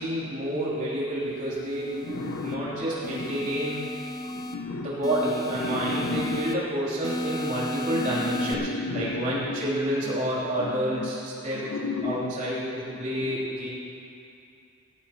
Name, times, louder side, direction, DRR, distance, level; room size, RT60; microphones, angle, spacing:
voice 1, 0.0-3.8 4.8-8.6 8.9-11.7 12.0-13.7, equal, 35° right, -9 dB, 3.7 m, -29 dB
sound 1, 1.4-2.5 3.0-4.5 5.0-6.5 7.0-8.5, left 1 dB, 20° left, 0.6 m, -34 dB
voice 2, 2.0-3.6 4.3-4.9 5.6-6.4 7.9-9.7 10.6-11.1 11.5-12.3 13.2-13.4, left 3 dB, 60° left, 3 dB, 0.7 m, -34 dB
18.0 x 15.5 x 3.2 m, 2.6 s
head